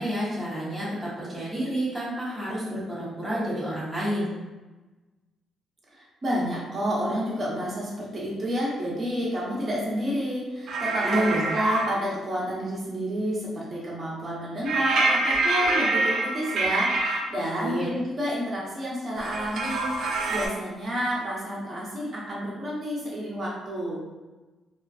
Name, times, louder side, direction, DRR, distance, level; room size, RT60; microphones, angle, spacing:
voice 1, 0.0-4.3 11.0-11.5 17.6-17.9, equal, 5° right, -10 dB, 0.9 m, -29 dB
voice 2, 5.9-11.2 11.5-24.0, equal, 35° right, -5 dB, 1.0 m, -30 dB
sound 1, 10.7-11.9 14.6-17.2 19.2-20.5, right 2 dB, 65° right, 0.5 m, -25 dB
2.4 x 2.3 x 2.3 m, 1.2 s
cardioid pair, 90°, 0 cm